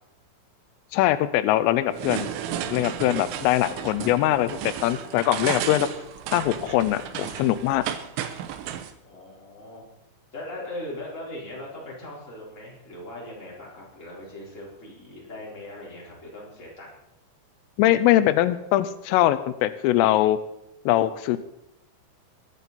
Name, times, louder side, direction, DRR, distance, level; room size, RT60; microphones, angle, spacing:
voice 1, 0.9-2.3 2.7-5.9 6.3-7.8 17.8-20.4 20.9-21.4, left 14 dB, 90° left, 12 dB, 3.2 m, -22 dB
sound 1, 1.9-8.9, right 10 dB, 80° right, 3.3 m, -33 dB
voice 2, 3.2-4.0 9.0-9.8 10.3-17.0, left 1 dB, 15° left, -4 dB, 3.9 m, -40 dB
22.0 x 9.1 x 4.2 m, 0.86 s
omnidirectional pair, 5.7 m